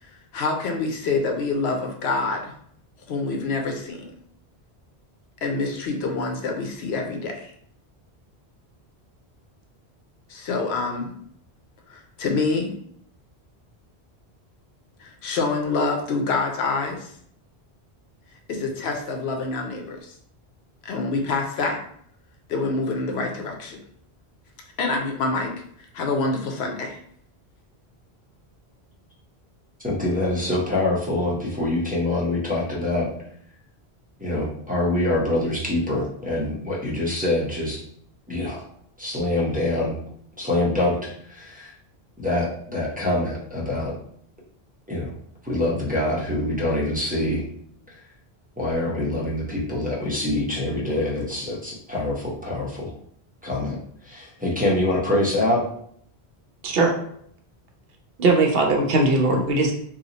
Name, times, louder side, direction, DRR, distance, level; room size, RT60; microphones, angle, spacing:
voice 1, 0.3-2.5 3.1-4.0 5.4-7.5 10.3-11.1 11.9-12.7 15.0-17.1 18.5-20.1 20.8-21.8 22.5-23.8 24.8-25.5 25.8-27.0, left 3 dB, 80° left, 3 dB, 0.9 m, -26 dB
voice 2, 29.8-33.1 34.2-37.8 38.3-38.6 39.0-40.0 40.4-41.7 42.2-43.9 44.9-45.1 45.4-47.4 48.6-52.9 53.4-53.8 54.1-55.6, left 1 dB, 10° right, -7 dB, 0.7 m, -25 dB
voice 3, 56.6-56.9 58.2-59.7, right 2 dB, 65° right, 2 dB, 0.9 m, -19 dB
2.8 x 2.3 x 3.9 m, 0.65 s
omnidirectional pair, 1.1 m